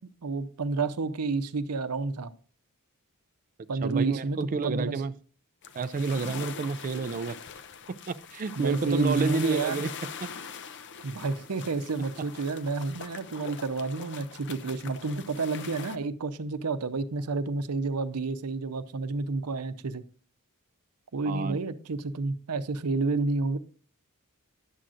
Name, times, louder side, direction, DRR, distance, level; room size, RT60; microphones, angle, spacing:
voice 1, 0.2-2.3 3.7-5.0 8.6-9.8 11.0-20.0 21.1-23.6, right 3 dB, 85° right, 0.7 m, -30 dB
voice 2, 3.8-5.1 5.7-7.4 8.1-9.9 10.2-10.3 21.3-21.6, right 4 dB, 40° right, 0.3 m, -29 dB
sound 1, 5.6-16.0, left 6 dB, 55° left, 0.5 m, -42 dB
11.0 x 7.5 x 2.5 m
head